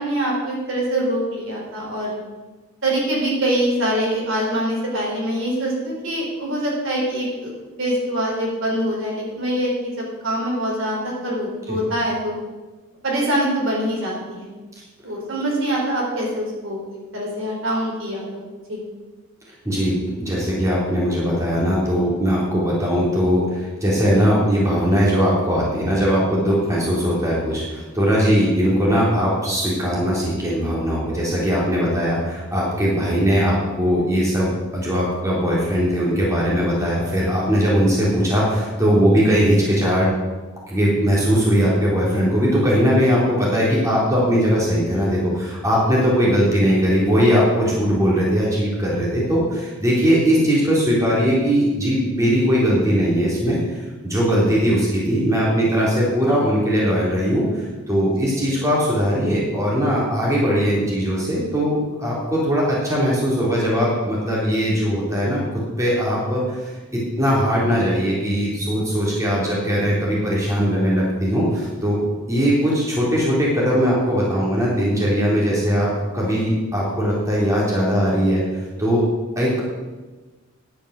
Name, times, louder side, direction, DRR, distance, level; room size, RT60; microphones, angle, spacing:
voice 1, 0.0-2.2 2.8-7.5 7.8-12.3 13.0-14.5 15.0-18.4 18.7-18.8, right 1 dB, 60° right, -3 dB, 4.4 m, -24 dB
voice 2, 19.6-40.1 40.7-72.0 72.3-79.1 79.3-79.6, equal, 15° right, -5 dB, 3.2 m, -20 dB
10.5 x 10.0 x 6.4 m, 1.3 s
head